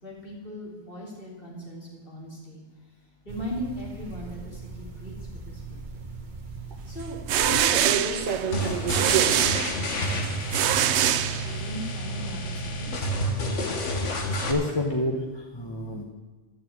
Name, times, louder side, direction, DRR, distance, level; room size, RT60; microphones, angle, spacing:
voice 1, 0.0-2.6 3.2-5.1 5.4-5.8 6.8-11.1 11.4-13.1, left 1 dB, 50° left, -4 dB, 3.9 m, -39 dB
sound 1, 3.3-9.5, right 6 dB, 45° right, 1.2 m, -33 dB
sound 2, 7.0-11.9, right 11 dB, 70° right, 0.8 m, -25 dB
sound 3, 8.5-14.5, equal, 90° left, 1.8 m, -29 dB
voice 2, 14.4-16.0, left 1 dB, 25° left, 1 dB, 1.1 m, -28 dB
12.0 x 6.8 x 9.3 m, 1.2 s
omnidirectional pair, 1.2 m